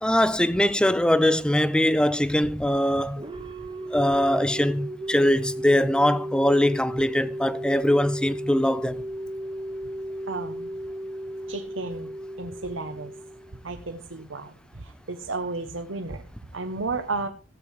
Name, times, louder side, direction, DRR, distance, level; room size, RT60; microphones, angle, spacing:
voice 1, 0.0-3.2 3.9-9.0, left 1 dB, 5° left, 0.7 m, -22 dB
sound 1, 3.2-13.8, right 1 dB, 25° right, 1.1 m, -35 dB
voice 2, 10.3-10.7 11.5-12.1 12.4-13.1 13.6-17.3, right 3 dB, 80° right, 1.2 m, -33 dB
15.5 x 8.6 x 4.8 m
head